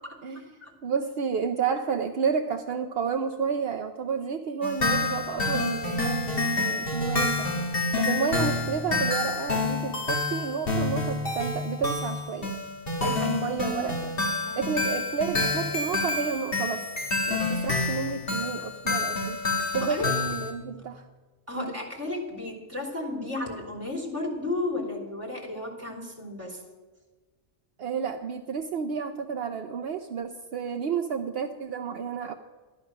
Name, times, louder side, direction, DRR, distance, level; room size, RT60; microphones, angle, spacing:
voice 1, 0.0-0.7 13.0-13.4 14.4-14.8 19.7-20.1 21.5-26.6, left 2 dB, 15° right, -1 dB, 3.1 m, -34 dB
voice 2, 0.8-7.5 8.0-12.5 13.0-14.1 14.5-16.9 17.3-19.4 19.7-21.1 21.5-21.7 27.8-32.3, right 6 dB, 65° right, 6 dB, 0.9 m, -31 dB
sound 1, 4.6-20.5, left 3 dB, 60° left, 2.2 m, -28 dB
13.5 x 11.5 x 6.1 m, 1.3 s
omnidirectional pair, 1.1 m